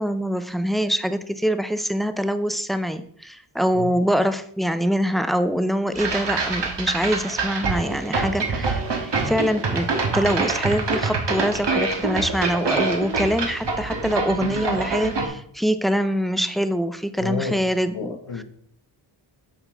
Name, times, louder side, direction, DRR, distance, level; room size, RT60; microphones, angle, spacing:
voice 1, 0.0-9.9 10.1-18.4, equal, ahead, 0.3 m, -24 dB
sound 1, 5.9-15.3, right 3 dB, 60° right, 1.4 m, -25 dB
voice 2, 17.2-17.7 17.9-18.4, left 4 dB, 60° left, 1.0 m, -30 dB
9.0 x 5.9 x 3.4 m
wide cardioid pair, 110°, 48 cm